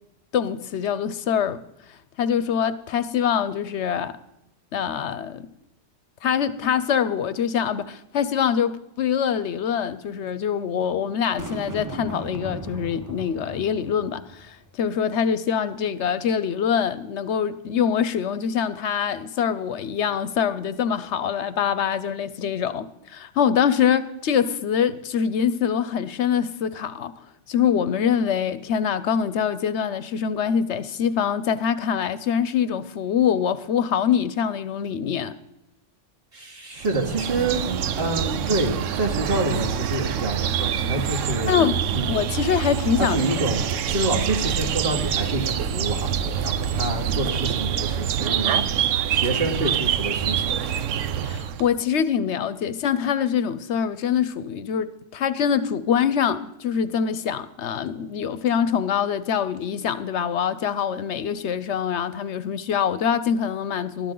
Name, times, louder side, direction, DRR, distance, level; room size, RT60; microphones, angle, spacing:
voice 1, 0.3-1.6 1.9-4.2 4.7-5.5 6.2-27.1 27.5-35.3 41.5-41.8 42.1-43.2 51.2-64.1, left 8 dB, 70° left, 0.9 m, -24 dB
Boom, 11.4-14.7, right 2 dB, 15° right, 0.8 m, -37 dB
voice 2, 36.3-37.6 38.0-42.0 43.0-48.7 49.1-50.6, right 2 dB, 50° right, 2.3 m, -27 dB
sound 1, 36.8-51.7, right 9 dB, 85° right, 1.0 m, -26 dB
19.5 x 12.5 x 3.8 m
omnidirectional pair, 1.3 m